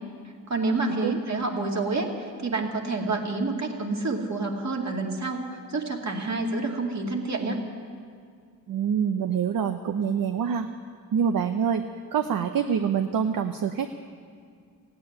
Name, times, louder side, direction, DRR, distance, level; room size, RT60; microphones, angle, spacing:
voice 1, 0.5-7.6, right 3 dB, 45° right, 1 dB, 2.4 m, -28 dB
voice 2, 8.7-10.7 11.1-11.8 12.1-13.9, right 7 dB, 60° right, 7 dB, 0.8 m, -25 dB
15.5 x 9.2 x 9.7 m, 2.1 s
cardioid pair, 65°, 38 cm